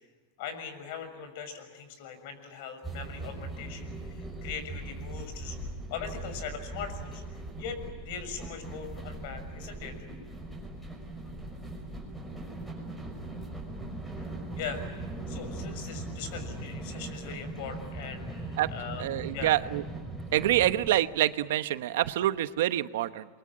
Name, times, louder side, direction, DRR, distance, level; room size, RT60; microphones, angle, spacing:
voice 1, 0.4-7.2 7.6-10.0 14.6-14.9 15.3-19.1 19.3-19.5, left 6 dB, 60° left, 9 dB, 6.5 m, -40 dB
sound 1, 2.8-20.9, right 2 dB, 5° left, 5.8 m, -40 dB
voice 2, 19.0-19.8 20.3-23.3, right 13 dB, 75° right, 12 dB, 1.1 m, -26 dB
29.0 x 23.5 x 8.8 m, 1.5 s
supercardioid pair, 155°, 0 cm